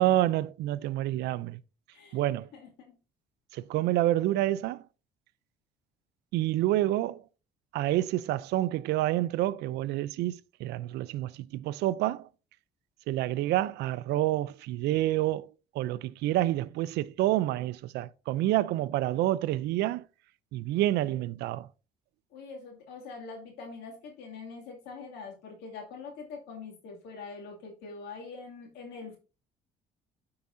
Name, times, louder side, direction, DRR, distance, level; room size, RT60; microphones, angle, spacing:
voice 1, 0.0-1.6 2.1-2.5 3.5-4.9 6.3-7.2 7.7-12.3 13.1-15.5 15.7-20.0 20.5-21.7, right 14 dB, 80° right, 0.5 m, -28 dB
voice 2, 2.5-3.0 22.3-29.2, left 4 dB, 90° left, 2.4 m, -44 dB
12.5 x 4.8 x 2.6 m
cardioid pair, 110°, 17 cm